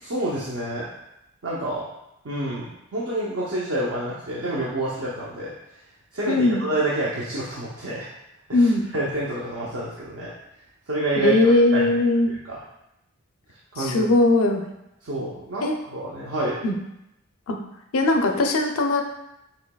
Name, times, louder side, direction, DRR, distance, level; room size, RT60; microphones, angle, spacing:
voice 1, 0.0-0.9 1.4-1.9 2.2-5.5 6.1-8.1 8.5-10.3 10.9-11.9 12.3-12.6 13.7-14.1 15.0-16.6, right 1 dB, 60° right, -6 dB, 0.7 m, -28 dB
voice 2, 6.3-6.6 8.5-8.8 11.2-12.3 13.8-14.6 15.6-15.8 16.6-16.7 17.5-17.6 17.9-19.0, left 2 dB, 70° left, 4 dB, 0.5 m, -19 dB
6.3 x 2.9 x 2.2 m, 0.86 s
head